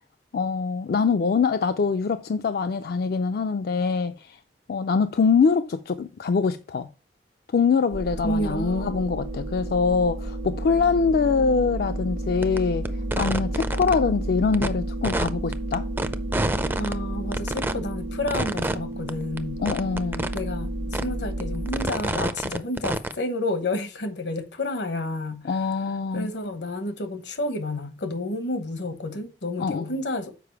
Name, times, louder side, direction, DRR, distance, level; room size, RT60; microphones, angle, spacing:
voice 1, 0.3-4.4 4.7-6.9 7.5-12.9 13.2-15.9 19.6-20.3 25.4-26.3 29.6-29.9, left 5 dB, 60° left, 0.4 m, -24 dB
sound 1, 7.9-21.9, right 1 dB, 50° right, 0.7 m, -31 dB
voice 2, 8.2-8.9 16.8-19.6 20.3-25.5 26.1-30.3, left 2 dB, 80° left, 1.1 m, -30 dB
sound 2, 12.4-12.6 12.8-13.9 14.5-14.7 15.0-16.9 17.3-17.7 18.3-18.8 19.1-19.2 19.4-19.5 19.7-20.4 20.9-21.0 21.4-23.2, right 1 dB, 10° right, 0.4 m, -27 dB
6.9 x 4.9 x 4.6 m
head